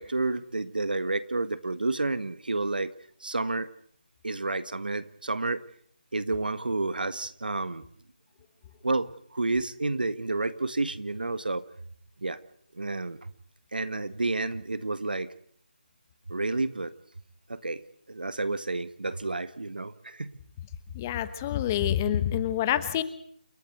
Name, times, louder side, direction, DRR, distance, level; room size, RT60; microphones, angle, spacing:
voice 1, 0.0-2.9 3.2-3.7 4.2-5.6 6.1-7.8 8.8-11.6 12.2-12.4 12.7-13.3 13.7-15.3 16.3-16.9 17.5-17.8 18.1-20.4, right 2 dB, 80° right, 14 dB, 1.6 m, -30 dB
voice 2, 20.9-23.0, left 11 dB, 20° left, 13 dB, 1.1 m, -27 dB
29.0 x 12.0 x 9.3 m, 0.63 s
figure-of-eight pair, 165°, 5 cm